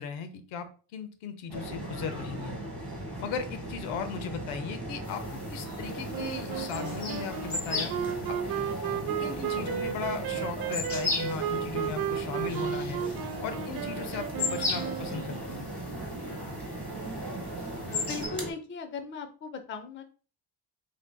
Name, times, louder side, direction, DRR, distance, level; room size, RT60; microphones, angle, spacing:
voice 1, 0.0-2.6 3.2-7.9 8.3-8.4 9.2-13.0 13.4-15.7, left 7 dB, 80° left, 9 dB, 0.8 m, -37 dB
sound 1, 1.5-18.5, right 1 dB, ahead, 1.4 m, -38 dB
sound 2, 5.0-18.3, left 3 dB, 60° left, 1.7 m, -38 dB
Wind instrument woodwind instrument, 6.1-15.6, right 8 dB, 50° right, 0.6 m, -34 dB
voice 2, 17.9-20.0, left 4 dB, 25° left, 7 dB, 0.5 m, -38 dB
5.0 x 2.7 x 2.2 m, 0.37 s
cardioid pair, 110°, 48 cm